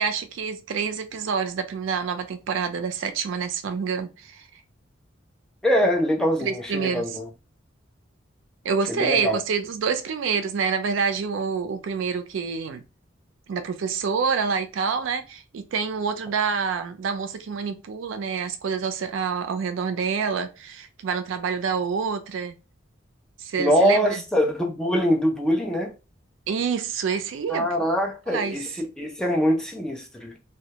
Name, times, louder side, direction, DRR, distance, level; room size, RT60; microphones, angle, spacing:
voice 1, 0.0-4.5 6.4-7.1 8.6-12.8 13.5-22.6 23.4-24.2 26.5-27.7 28.3-28.6, right 6 dB, 75° right, 0.4 m, -27 dB
voice 2, 5.6-7.3 8.9-9.4 23.6-25.9 27.5-30.3, equal, 5° left, 0.4 m, -23 dB
2.2 x 2.0 x 2.7 m
head